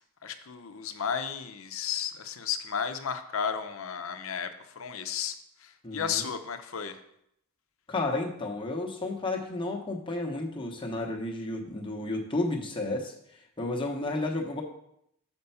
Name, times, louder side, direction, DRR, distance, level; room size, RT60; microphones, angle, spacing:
voice 1, 0.2-4.5 4.7-5.3 5.6-7.0, left 7 dB, 65° left, 8 dB, 0.6 m, -33 dB
voice 2, 5.8-6.2 7.9-13.1 13.6-14.6, left 2 dB, 25° left, 1 dB, 0.9 m, -32 dB
6.7 x 4.4 x 5.6 m, 0.76 s
head